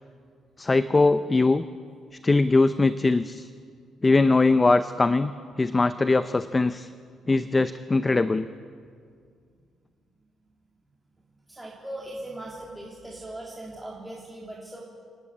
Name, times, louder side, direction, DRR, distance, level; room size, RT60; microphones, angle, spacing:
voice 1, 0.6-1.7 2.2-3.5 4.0-5.3 5.6-6.9 7.3-8.5, left 3 dB, 25° left, 12 dB, 0.6 m, -21 dB
voice 2, 11.5-14.8, right 1 dB, 10° right, -4 dB, 3.1 m, -39 dB
28.5 x 9.8 x 9.6 m, 2.1 s
cardioid pair, 90°, 0 cm